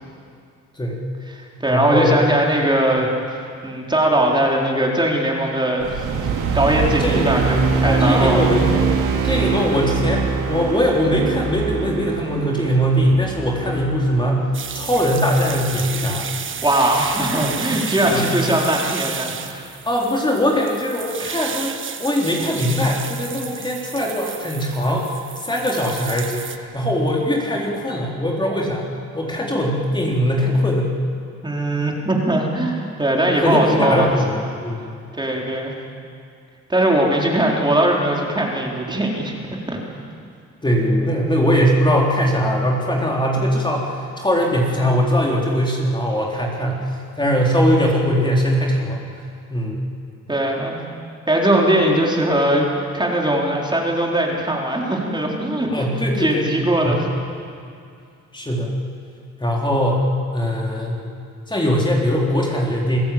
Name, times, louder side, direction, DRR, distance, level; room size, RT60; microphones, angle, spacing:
voice 1, 0.8-1.1 1.7-2.2 7.0-7.4 7.8-8.9 9.2-16.3 18.1-18.3 19.8-28.9 29.1-31.0 33.4-34.8 40.6-46.8 47.2-49.0 49.5-49.9 55.7-56.5 56.8-57.1 58.3-58.7 59.4-61.0 61.5-63.0, equal, 15° left, -2 dB, 4.0 m, -21 dB
voice 2, 1.4-3.1 3.6-6.3 6.5-8.5 16.6-19.7 31.4-34.1 35.1-35.7 36.7-39.3 39.7-39.8 50.3-50.8 51.3-52.7 52.9-55.9 56.2-57.1, right 1 dB, 15° right, -1 dB, 4.3 m, -20 dB
sound 1, 5.8-16.3, right 5 dB, 90° right, 3.0 m, -24 dB
sound 2, 14.5-26.6, right 6 dB, 40° right, 1.4 m, -32 dB
28.5 x 16.5 x 8.7 m, 2.4 s
cardioid pair, 90°, 30 cm